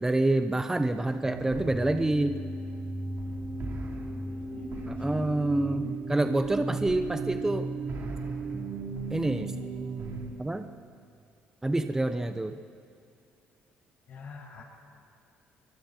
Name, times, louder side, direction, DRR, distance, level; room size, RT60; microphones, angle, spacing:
voice 1, 0.0-2.5 4.9-7.7 9.1-9.6 10.4-10.7 11.6-12.6, right 2 dB, 10° right, 9 dB, 1.0 m, -27 dB
sound 1, 1.2-10.3, right 3 dB, 65° right, 4.1 m, -35 dB
voice 2, 3.9-5.5 5.8-6.0 14.1-14.6, left 5 dB, 60° left, -6 dB, 6.7 m, -46 dB
25.0 x 23.5 x 4.6 m, 2.5 s
supercardioid pair, 80°, 4 cm